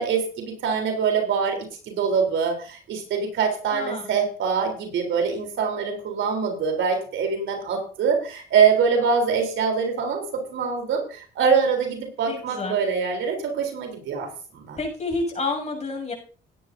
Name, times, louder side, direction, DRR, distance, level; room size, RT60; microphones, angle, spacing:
voice 1, 0.0-1.6 1.8-14.8, right 6 dB, 75° right, 4 dB, 3.6 m, -24 dB
voice 2, 3.7-4.0 12.3-12.8 14.8-16.1, left 3 dB, 35° left, 1 dB, 7.6 m, -29 dB
16.5 x 11.0 x 2.7 m, 0.40 s
cardioid pair, 90°, 20 cm